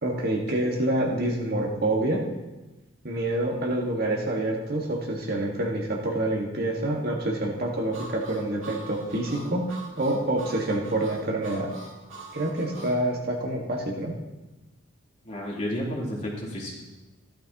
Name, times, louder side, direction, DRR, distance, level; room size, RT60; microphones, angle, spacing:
voice 1, 0.0-2.2 3.0-11.7 12.3-14.1, right 1 dB, 50° right, -1 dB, 1.8 m, -27 dB
Harmonica, 7.9-13.0, right 2 dB, 75° right, 2.6 m, -43 dB
voice 2, 15.2-16.8, equal, 35° left, -6 dB, 3.5 m, -31 dB
14.5 x 12.0 x 3.0 m, 1.1 s
head